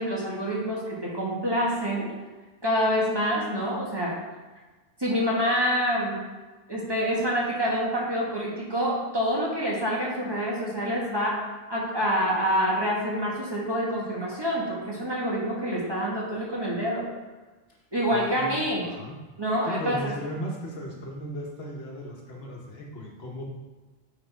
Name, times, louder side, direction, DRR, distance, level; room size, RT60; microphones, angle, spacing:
voice 1, 0.0-2.1 2.6-4.2 5.0-6.2 6.7-11.4 11.7-17.0 17.9-18.9 19.4-20.1, equal, 25° right, -5 dB, 1.4 m, -27 dB
voice 2, 18.1-19.2 19.6-23.5, equal, 70° left, -1 dB, 1.3 m, -36 dB
8.8 x 4.3 x 3.4 m, 1.2 s
omnidirectional pair, 1.1 m